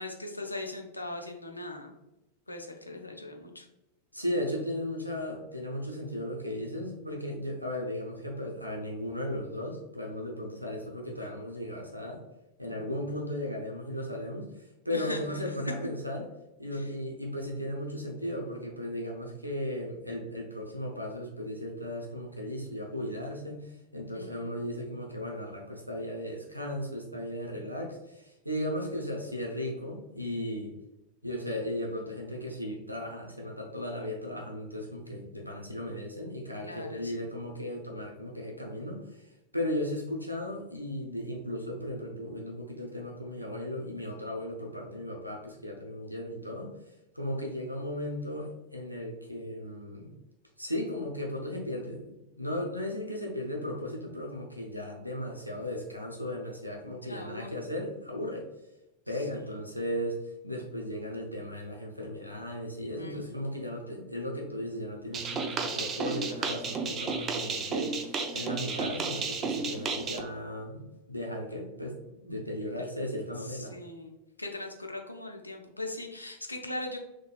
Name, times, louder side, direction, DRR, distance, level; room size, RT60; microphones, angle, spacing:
voice 1, 0.0-2.0 2.5-3.7 12.6-13.0 14.9-15.5 16.7-16.9 24.1-24.6 36.6-37.3 57.0-57.5 63.0-63.5 73.4-77.0, left 2 dB, 85° left, 3 dB, 0.5 m, -40 dB
voice 2, 4.1-12.2 12.6-14.5 14.8-16.3 16.6-30.7 31.2-39.3 39.5-46.7 47.1-50.1 50.6-58.4 59.1-60.2 60.4-67.9 68.3-73.7, left 1 dB, 90° right, -1 dB, 0.7 m, -36 dB
sound 1, 65.1-70.2, right 4 dB, 25° right, 0.4 m, -32 dB
3.9 x 3.1 x 2.3 m, 0.94 s
figure-of-eight pair, 90°, 0 cm